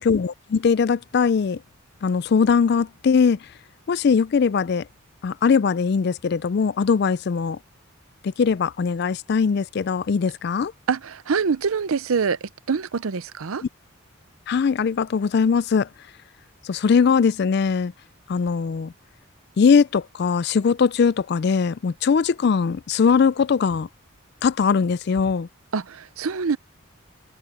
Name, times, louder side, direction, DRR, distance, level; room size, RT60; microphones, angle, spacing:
voice 1, 0.1-1.6 2.0-3.4 3.9-4.8 5.2-7.6 8.4-10.7 14.5-15.9 16.7-17.9 18.3-18.9 19.6-23.9 24.4-25.5, left 5 dB, 50° left, 0.3 m, -20 dB
voice 2, 10.9-13.6 25.7-26.6, right 5 dB, 80° right, 0.6 m, -25 dB
head